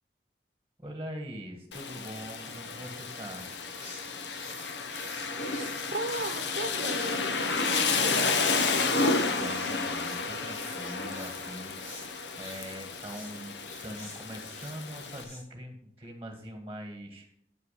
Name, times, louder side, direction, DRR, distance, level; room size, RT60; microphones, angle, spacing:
voice 1, 0.8-3.5 9.2-13.6 13.8-17.3, equal, 15° right, 3 dB, 1.5 m, -43 dB
Rain, 1.7-15.2, left 4 dB, 90° left, 1.1 m, -31 dB
sound 1, 3.4-15.4, left 2 dB, 45° left, 3.7 m, -49 dB
voice 2, 5.9-7.3 7.6-8.4, right 2 dB, 60° right, 5 dB, 0.8 m, -36 dB
8.9 x 6.8 x 5.7 m, 0.68 s
head